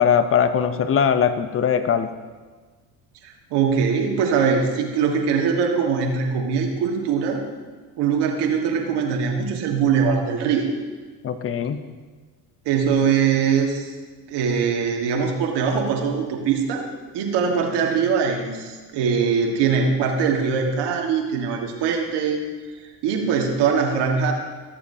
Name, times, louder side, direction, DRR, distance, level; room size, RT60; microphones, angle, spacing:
voice 1, 0.0-2.1 11.2-11.8, left 7 dB, 30° left, 11 dB, 0.7 m, -20 dB
voice 2, 3.2-7.4 8.0-10.7 12.6-13.9 14.3-16.8 17.1-22.4 23.0-24.3, right 6 dB, 60° right, 1 dB, 1.7 m, -22 dB
14.0 x 6.9 x 2.8 m, 1.4 s
supercardioid pair, 85°, 46 cm